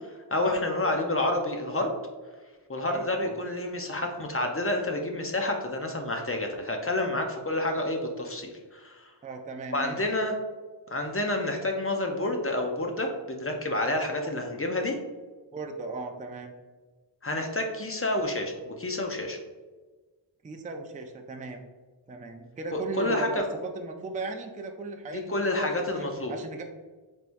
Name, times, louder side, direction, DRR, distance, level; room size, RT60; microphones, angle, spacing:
voice 1, 0.3-1.9 2.7-9.1 9.7-10.3 10.9-15.0 17.2-19.4 22.7-23.4 25.1-26.4, left 1 dB, 30° left, 2 dB, 0.6 m, -29 dB
voice 2, 2.7-3.3 9.2-10.0 15.5-16.5 20.4-21.6 22.1-26.6, right 2 dB, 20° right, 4 dB, 0.4 m, -37 dB
4.2 x 3.5 x 2.5 m, 1.3 s
wide cardioid pair, 75°, 47 cm